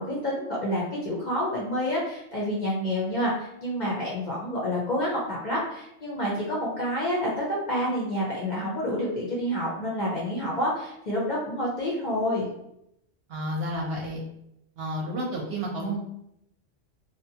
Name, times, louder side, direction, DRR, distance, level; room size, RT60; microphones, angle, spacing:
voice 1, 0.0-12.5, equal, 50° left, -5 dB, 0.5 m, -28 dB
voice 2, 13.3-14.2 14.8-16.0, right 1 dB, 60° right, -1 dB, 0.7 m, -31 dB
2.7 x 2.2 x 2.7 m, 0.79 s
omnidirectional pair, 1.3 m